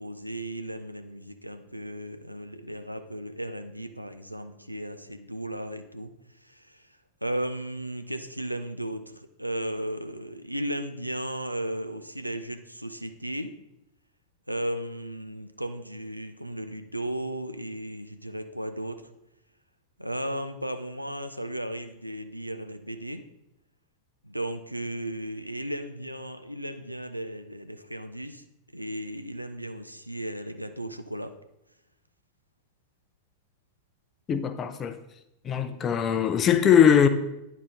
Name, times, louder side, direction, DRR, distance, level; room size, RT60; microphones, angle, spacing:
voice 1, 0.0-6.1 6.4-6.9 7.2-13.5 14.5-19.1 20.0-23.2 24.2-28.4 28.7-31.3, right 1 dB, 90° right, 0.5 m, -35 dB
voice 2, 34.3-34.9 35.4-37.1, left 8 dB, 25° left, 0.5 m, -21 dB
9.8 x 4.1 x 3.5 m
figure-of-eight pair, 90°, 0 cm